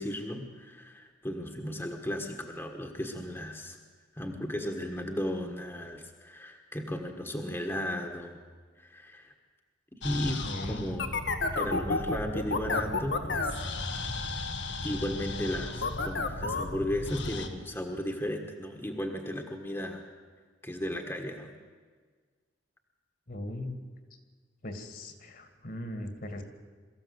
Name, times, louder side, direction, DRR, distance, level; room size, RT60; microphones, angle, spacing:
voice 1, 0.0-3.8 4.1-8.4 8.8-9.3 9.9-11.1 11.5-13.7 14.0-14.2 14.8-20.1 20.6-21.5, left 1 dB, 15° left, 3 dB, 1.5 m, -35 dB
sound 1, 10.0-17.5, left 3 dB, 70° left, 1.6 m, -33 dB
voice 2, 10.4-10.8 23.3-23.8 24.6-26.4, left 1 dB, 50° left, 7 dB, 2.3 m, -39 dB
23.0 x 14.5 x 8.1 m, 1.5 s
head